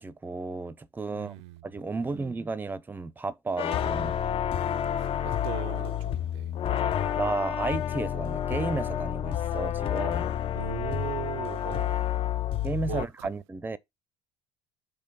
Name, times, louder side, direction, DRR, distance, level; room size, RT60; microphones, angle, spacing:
voice 1, 0.0-1.3 1.6-4.2 7.2-10.3 12.6-13.8, right 3 dB, 10° right, 0.5 m, -33 dB
voice 2, 1.1-2.2 4.6-6.5 10.5-12.0 12.9-13.3, right 16 dB, 65° right, 0.4 m, -40 dB
sound 1, 3.6-13.0, left 10 dB, 40° left, 0.4 m, -29 dB
5.2 x 3.5 x 5.6 m
figure-of-eight pair, 65°, 15 cm